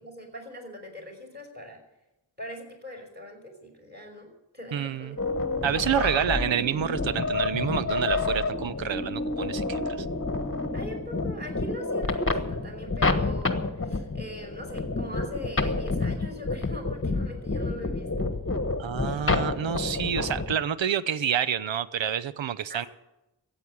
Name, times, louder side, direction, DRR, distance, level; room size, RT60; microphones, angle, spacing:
voice 1, 0.0-1.8 2.4-5.3 5.9-6.6 10.7-18.4 22.7-22.9, equal, 20° right, 0 dB, 5.4 m, -42 dB
voice 2, 4.7-5.2 5.6-10.1 18.8-22.9, right 9 dB, 70° right, 15 dB, 0.7 m, -28 dB
sound 1, 5.2-20.5, left 3 dB, 25° left, 1.3 m, -29 dB
14.0 x 9.0 x 9.9 m, 0.93 s
wide cardioid pair, 85°, 46 cm